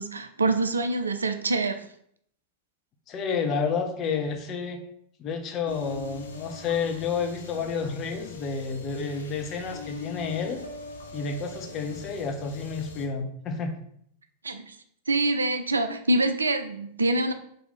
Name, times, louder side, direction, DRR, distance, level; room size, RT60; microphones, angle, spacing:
voice 1, 0.0-1.8 14.4-14.7 15.1-17.3, right 2 dB, 75° right, 9 dB, 0.4 m, -25 dB
voice 2, 3.1-4.8 5.2-10.6 11.1-13.7, left 5 dB, 35° left, 4 dB, 0.7 m, -30 dB
sound 1, 5.7-13.1, left 4 dB, 70° left, 0.7 m, -41 dB
4.3 x 2.7 x 4.0 m, 0.67 s
figure-of-eight pair, 90°, 0 cm